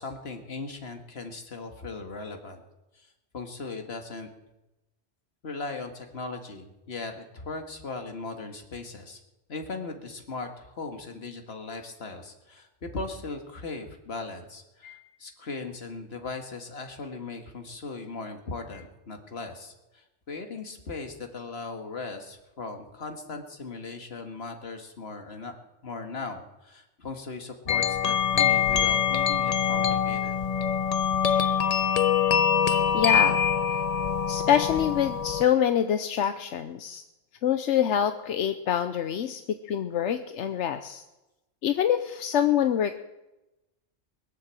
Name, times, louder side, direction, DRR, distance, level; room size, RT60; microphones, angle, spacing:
voice 1, 0.0-2.6 3.0-3.1 3.3-4.3 5.4-9.2 9.5-25.6 25.8-30.4, left 3 dB, 65° left, 5 dB, 1.9 m, -38 dB
sound 1, 27.7-35.4, left 7 dB, 40° left, 0.7 m, -24 dB
voice 2, 32.6-33.4 34.3-37.0 37.4-41.0 41.6-43.0, left 9 dB, 85° left, 9 dB, 1.0 m, -26 dB
21.5 x 7.8 x 7.5 m, 0.98 s
omnidirectional pair, 1.2 m